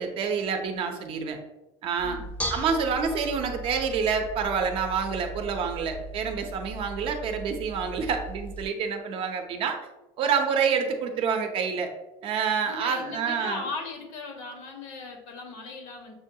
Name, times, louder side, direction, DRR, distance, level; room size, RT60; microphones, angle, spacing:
voice 1, 0.0-1.4 1.8-2.2 2.5-9.8 10.2-11.9 12.2-13.6, right 6 dB, 50° right, 5 dB, 0.6 m, -27 dB
Bell / Dishes pots and pans, 2.0-8.6, right 1 dB, 10° left, 0.5 m, -38 dB
voice 2, 12.6-16.1, left 3 dB, 80° left, 3 dB, 1.0 m, -37 dB
6.7 x 2.3 x 2.7 m, 0.99 s
cardioid pair, 155°, 12 cm